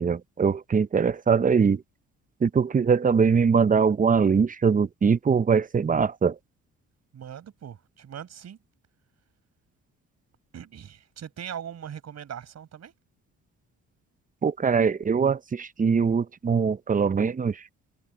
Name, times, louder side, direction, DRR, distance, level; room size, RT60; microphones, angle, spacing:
voice 1, 0.0-1.8 2.4-6.3 14.4-17.6, right 6 dB, 25° right, 0.7 m, -22 dB
voice 2, 7.1-8.6 10.5-12.9, right 9 dB, 60° right, 5.7 m, -40 dB
cardioid pair, 90°, 30 cm